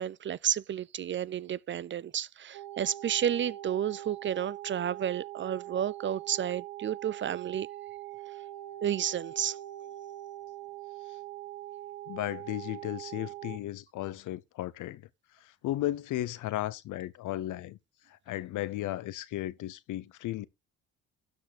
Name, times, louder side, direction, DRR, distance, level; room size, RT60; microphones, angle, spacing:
voice 1, 0.0-7.7 8.8-9.6, right 10 dB, 40° right, 0.4 m, -31 dB
sound 1, 2.5-13.6, right 14 dB, 60° right, 1.2 m, -43 dB
voice 2, 12.1-15.0 15.4-17.8 18.1-20.5, left 15 dB, 80° left, 0.8 m, -35 dB
12.0 x 5.2 x 4.1 m
cardioid pair, 90°, 30 cm